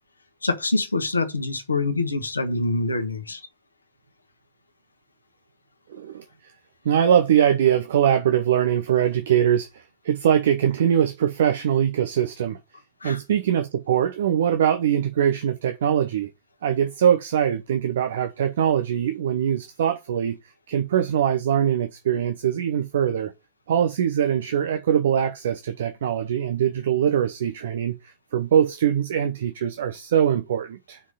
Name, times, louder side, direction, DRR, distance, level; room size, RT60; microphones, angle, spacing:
voice 1, 0.4-3.4 13.0-13.2, left 3 dB, 80° left, 1.3 m, -25 dB
voice 2, 5.9-6.2 6.8-12.6 13.0-16.3 16.6-20.4 20.7-23.3 23.7-27.9 28.3-31.0, right 9 dB, 60° right, 0.8 m, -22 dB
5.8 x 4.7 x 5.6 m
figure-of-eight pair, 90°, 0 cm